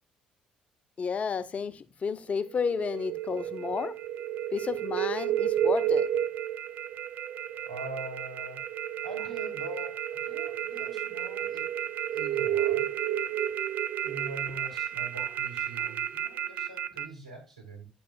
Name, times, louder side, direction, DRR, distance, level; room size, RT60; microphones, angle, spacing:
voice 1, 1.0-3.9 4.5-6.1, left 5 dB, 40° left, 0.7 m, -31 dB
sound 1, 2.3-17.1, right 10 dB, 55° right, 0.5 m, -31 dB
voice 2, 7.6-8.7 9.0-11.7 12.1-12.9 14.0-17.9, right 2 dB, 90° right, 2.0 m, -43 dB
9.2 x 6.8 x 2.4 m
figure-of-eight pair, 50°, 4 cm